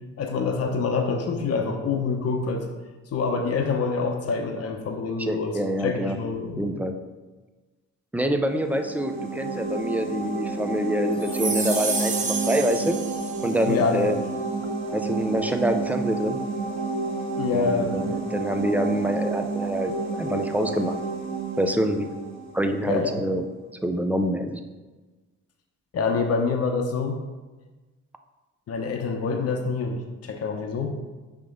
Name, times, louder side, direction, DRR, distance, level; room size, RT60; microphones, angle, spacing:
voice 1, 0.2-2.6 3.1-6.6 13.7-14.0 17.4-18.1 22.9-23.2 25.9-27.2 28.7-30.9, left 4 dB, 55° left, 3 dB, 0.9 m, -26 dB
voice 2, 5.2-6.2 6.6-7.0 8.1-13.0 13.4-14.2 14.9-16.4 17.5-20.9 21.6-22.1 22.5-23.4 23.7-24.6, equal, 5° right, 6 dB, 0.5 m, -26 dB
sound 1, 8.5-23.2, right 3 dB, 60° right, 1.2 m, -30 dB
sound 2, 11.2-13.7, right 3 dB, 25° right, 0.9 m, -30 dB
5.9 x 3.6 x 5.1 m, 1.2 s
cardioid pair, 90°, 30 cm